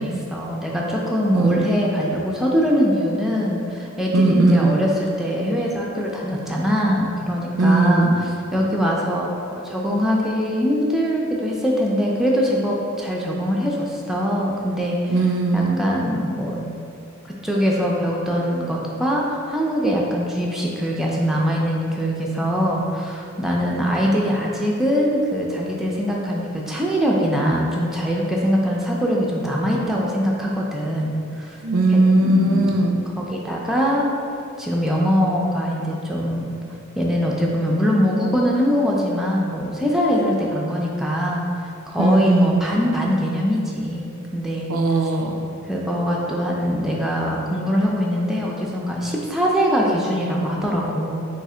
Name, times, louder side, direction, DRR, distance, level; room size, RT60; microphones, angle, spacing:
voice 1, 0.0-8.1 8.5-15.1 15.5-16.7 17.4-31.6 31.9-32.7 33.2-34.1 34.6-36.5 37.0-41.5 41.9-44.0 44.3-44.7 45.7-51.3, equal, ahead, -3 dB, 0.3 m, -22 dB
voice 2, 4.1-4.8 7.6-8.2 15.1-15.8 31.6-33.0 42.0-42.6 44.7-45.4, right 2 dB, 80° right, 3 dB, 0.4 m, -18 dB
3.2 x 2.7 x 3.7 m, 2.5 s
head